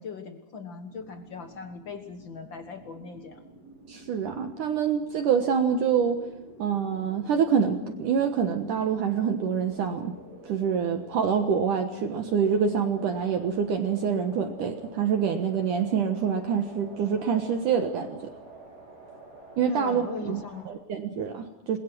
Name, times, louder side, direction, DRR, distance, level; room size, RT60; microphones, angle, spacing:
voice 1, 0.0-3.4 19.7-20.6, left 5 dB, 80° left, 7 dB, 1.0 m, -40 dB
sound 1, 0.8-20.6, right 2 dB, 40° right, 6.7 m, -48 dB
voice 2, 3.9-6.2 6.6-10.2 10.5-18.2 19.6-20.4 20.7-21.8, right 7 dB, 60° right, 6 dB, 2.6 m, -26 dB
29.0 x 21.5 x 6.2 m, 0.92 s
omnidirectional pair, 4.6 m